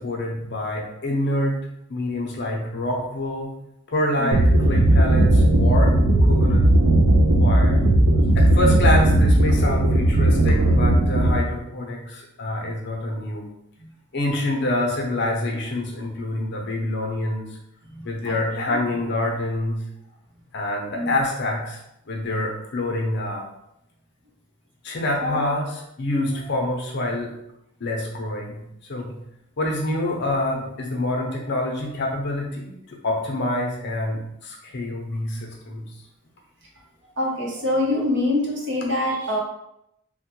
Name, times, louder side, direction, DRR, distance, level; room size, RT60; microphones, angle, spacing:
voice 1, 0.0-1.6 1.9-3.5 3.9-5.9 6.2-6.6 7.4-7.9 8.3-13.5 14.1-17.5 18.0-19.9 20.5-21.8 22.1-23.4 24.8-27.3 27.8-28.6 28.9-29.2 29.6-35.9, left 1 dB, 55° left, 0 dB, 0.6 m, -26 dB
sound 1, 4.3-11.4, right 1 dB, 85° right, 0.5 m, -17 dB
voice 2, 17.9-18.8 20.9-21.1 25.2-25.4 26.2-26.4 37.2-39.4, left 1 dB, 55° right, -2 dB, 0.7 m, -25 dB
3.1 x 2.1 x 2.9 m, 0.81 s
head